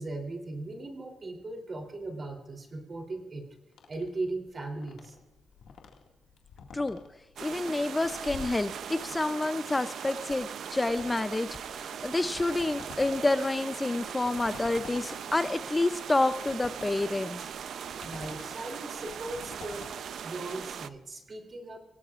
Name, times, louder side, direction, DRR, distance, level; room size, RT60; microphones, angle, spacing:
voice 1, 0.0-3.5 3.9-5.2 18.0-19.9 20.2-21.8, right 2 dB, 35° right, 4 dB, 3.2 m, -38 dB
sound 1, 3.7-21.0, left 5 dB, 90° left, 2.0 m, -50 dB
voice 2, 7.4-17.5, left 2 dB, 15° left, 11 dB, 0.5 m, -29 dB
sound 2, 7.4-20.9, right 8 dB, 75° right, 0.6 m, -40 dB
25.5 x 18.5 x 2.5 m, 1.1 s
cardioid pair, 120°, 0 cm